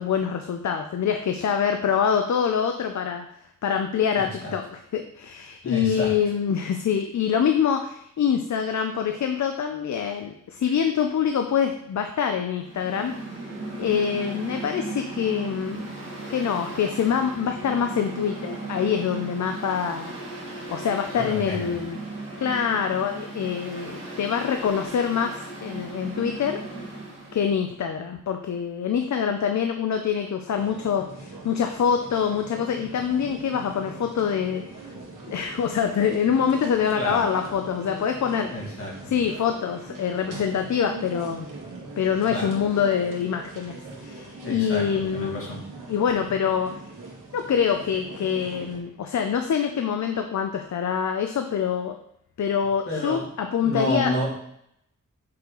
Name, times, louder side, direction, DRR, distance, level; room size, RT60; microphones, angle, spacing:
voice 1, 0.0-3.2 3.6-13.1 13.8-16.0 16.3-20.1 20.7-22.0 22.4-26.6 27.3-34.9 35.3-38.7 39.1-41.5 42.0-45.5 45.9-46.7 47.3-52.0 52.4-54.1, left 7 dB, 65° left, 6 dB, 0.6 m, -25 dB
voice 2, 4.1-4.5 5.6-6.2 21.2-21.8 36.9-37.3 38.5-39.2 42.3-42.6 44.3-45.7 52.9-53.3 53.6-54.3, equal, 45° left, -3 dB, 2.3 m, -30 dB
Mechanical fan, 12.6-27.4, right 2 dB, 40° right, 2.5 m, -36 dB
sound 1, 30.5-48.8, right 3 dB, 80° right, 1.6 m, -41 dB
6.5 x 5.7 x 3.9 m, 0.74 s
wide cardioid pair, 160°, 31 cm